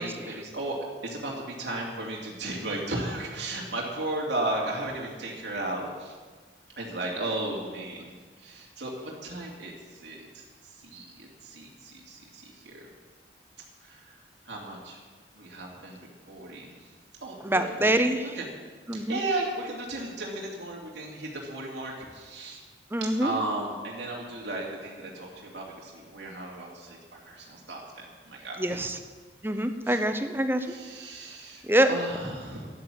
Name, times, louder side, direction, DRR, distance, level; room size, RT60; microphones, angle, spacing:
voice 1, 0.0-6.2 6.8-8.1 8.4-12.9 13.8-14.2 14.4-15.0 15.4-16.9 17.2-18.0 18.3-18.4 18.9-22.6 23.0-28.8 29.8-30.0 30.7-32.7, right 2 dB, 80° right, -3 dB, 2.7 m, -35 dB
voice 2, 17.4-18.3 18.9-19.2 22.9-23.3 28.6-29.0 29.4-30.7 31.6-31.9, right 1 dB, 10° right, 8 dB, 0.8 m, -25 dB
12.5 x 11.0 x 7.4 m, 1.5 s
head